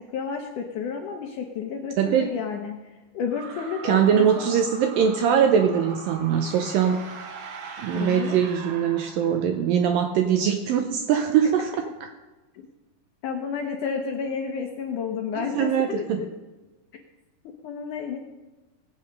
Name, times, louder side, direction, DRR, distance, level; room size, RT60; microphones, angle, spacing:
voice 1, 0.1-2.7 3.1-4.5 7.9-8.4 12.5-12.7 13.2-16.3 17.4-18.2, left 6 dB, 80° left, 3 dB, 1.8 m, -31 dB
voice 2, 2.0-2.3 3.8-7.0 7.8-11.7 12.0-12.1 15.4-16.2, right 8 dB, 85° right, 6 dB, 1.9 m, -22 dB
sound 1, 3.3-9.7, right 5 dB, 65° right, 2.0 m, -40 dB
18.0 x 8.6 x 5.3 m, 1.1 s
omnidirectional pair, 5.0 m